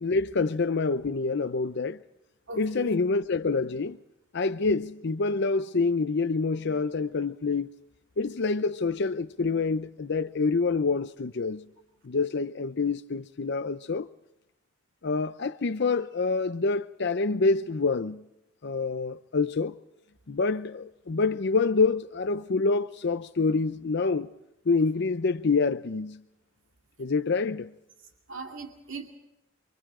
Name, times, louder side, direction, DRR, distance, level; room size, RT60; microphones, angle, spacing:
voice 1, 0.0-2.0 2.6-4.0 4.3-7.7 8.2-11.6 12.0-14.1 15.0-18.2 18.6-19.8 20.3-24.3 24.7-26.2 27.0-27.7, left 4 dB, 60° left, 0.6 m, -27 dB
voice 2, 2.5-2.9 28.3-29.1, right 3 dB, 75° right, 2.4 m, -39 dB
29.5 x 24.5 x 3.8 m
head